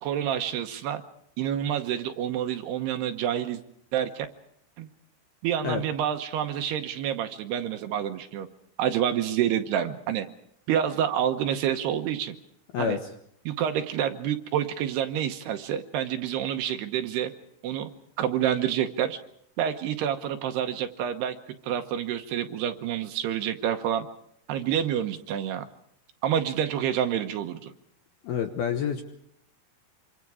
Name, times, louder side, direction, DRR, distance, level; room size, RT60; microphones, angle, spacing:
voice 1, 0.0-1.0 1.4-3.6 3.9-4.3 4.8-4.9 5.4-8.5 8.8-10.3 10.7-12.4 12.8-13.0 13.5-17.3 17.6-17.9 18.2-19.2 19.6-21.4 21.6-24.1 24.5-25.7 26.2-27.7, right 10 dB, 75° right, 7 dB, 2.6 m, -28 dB
voice 2, 12.7-13.1 28.2-29.0, left 7 dB, 70° left, 6 dB, 2.5 m, -28 dB
26.0 x 26.0 x 4.9 m, 0.68 s
omnidirectional pair, 5.8 m